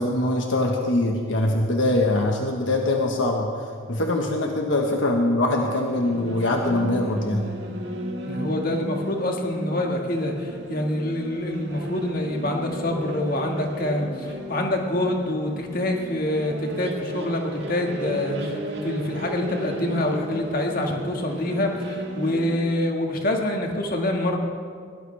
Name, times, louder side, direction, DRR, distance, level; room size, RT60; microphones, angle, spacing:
voice 1, 0.0-3.5 3.9-7.5, left 1 dB, 70° left, 1 dB, 1.4 m, -23 dB
sound 1, 5.5-22.6, equal, 55° right, 1.9 m, -34 dB
voice 2, 8.2-24.4, left 1 dB, 45° left, 1 dB, 1.9 m, -26 dB
22.5 x 17.5 x 3.4 m, 2.1 s
head